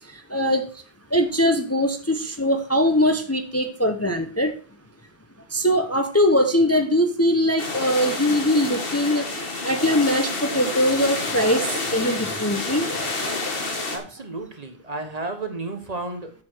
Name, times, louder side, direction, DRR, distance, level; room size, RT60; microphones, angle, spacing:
voice 1, 0.3-0.7 1.1-4.5 5.5-12.9, equal, 15° left, 6 dB, 0.8 m, -21 dB
sound 1, 7.6-14.0, left 3 dB, 60° left, 1.9 m, -29 dB
voice 2, 13.9-16.3, right 2 dB, 40° right, 6 dB, 1.2 m, -32 dB
7.5 x 6.8 x 6.1 m, 0.41 s
omnidirectional pair, 1.1 m